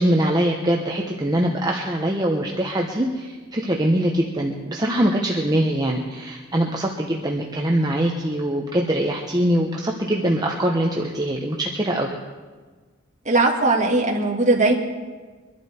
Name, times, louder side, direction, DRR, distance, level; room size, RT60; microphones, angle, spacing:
voice 1, 0.0-12.2, right 1 dB, 20° right, 0 dB, 0.9 m, -23 dB
voice 2, 13.3-14.7, right 2 dB, 35° right, -1 dB, 2.1 m, -19 dB
23.5 x 12.0 x 4.4 m, 1.4 s
head